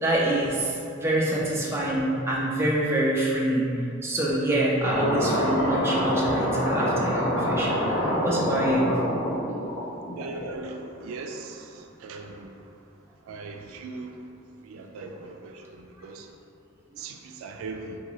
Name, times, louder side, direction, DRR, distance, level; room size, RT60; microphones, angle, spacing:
voice 1, 0.0-3.7 4.0-8.9 9.6-9.7, right 1 dB, 10° right, -5 dB, 0.4 m, -26 dB
sound 1, 4.8-10.6, equal, 60° left, 0.8 m, -26 dB
voice 2, 10.2-12.5 13.2-14.2 14.6-16.3 17.0-18.0, right 3 dB, 90° right, 3 dB, 0.3 m, -39 dB
3.7 x 2.2 x 3.0 m, 2.4 s
head